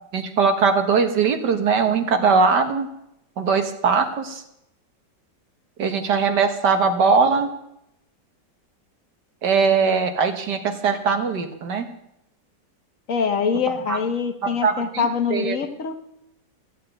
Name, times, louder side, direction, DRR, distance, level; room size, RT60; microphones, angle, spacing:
voice 1, 0.1-2.9 3.4-4.4 5.8-7.5 9.4-11.9 13.9-14.0 14.4-15.6, right 5 dB, 70° right, 7 dB, 2.0 m, -20 dB
voice 2, 13.1-15.9, left 6 dB, 50° left, 7 dB, 1.4 m, -24 dB
15.0 x 7.6 x 9.1 m, 0.80 s
omnidirectional pair, 1.9 m